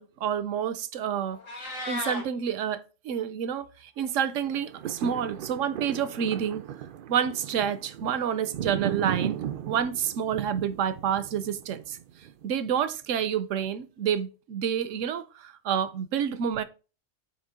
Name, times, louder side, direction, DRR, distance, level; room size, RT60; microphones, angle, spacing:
voice 1, 0.0-6.6 7.1-12.0 12.4-16.6, right 8 dB, 80° right, 1.0 m, -29 dB
Meow, 1.3-2.2, left 2 dB, 90° left, 2.1 m, -35 dB
sound 1, 4.4-12.7 13.2-13.3, right 9 dB, 60° right, 0.5 m, -36 dB
8.1 x 3.1 x 4.8 m
omnidirectional pair, 1.3 m